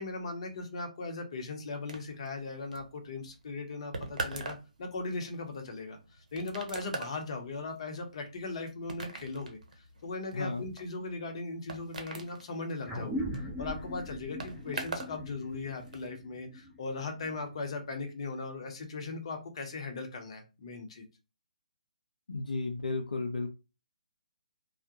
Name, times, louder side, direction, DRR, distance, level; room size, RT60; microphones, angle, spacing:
voice 1, 0.0-13.2 13.6-21.1, left 3 dB, 50° left, 4 dB, 0.7 m, -38 dB
sound 1, 1.9-15.2 15.4-16.1, right 3 dB, 70° right, 0.7 m, -42 dB
voice 2, 10.3-10.6 22.3-23.5, left 3 dB, 80° left, 3 dB, 0.5 m, -33 dB
sound 2, 12.9-17.7, equal, ahead, 0.7 m, -40 dB
2.2 x 2.0 x 2.7 m, 0.28 s
figure-of-eight pair, 140°, 4 cm